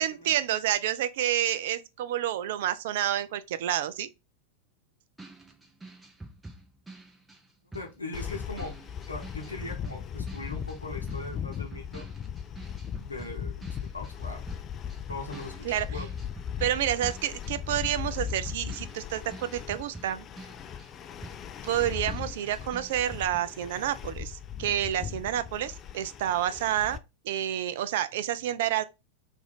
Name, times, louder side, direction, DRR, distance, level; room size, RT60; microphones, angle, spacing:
voice 1, 0.0-4.1 15.6-15.9 16.6-20.3 21.6-27.0 27.2-28.8, right 11 dB, 55° right, 0.4 m, -29 dB
sound 1, 5.2-14.2 14.5-23.4, right 2 dB, 10° right, 0.7 m, -47 dB
voice 2, 7.7-8.8 9.1-12.1 12.9-14.6 15.1-16.1, left 2 dB, 80° left, 0.8 m, -40 dB
sound 2, 8.1-27.0, left 8 dB, 30° left, 0.3 m, -38 dB
3.0 x 2.6 x 3.8 m
figure-of-eight pair, 90°, 0 cm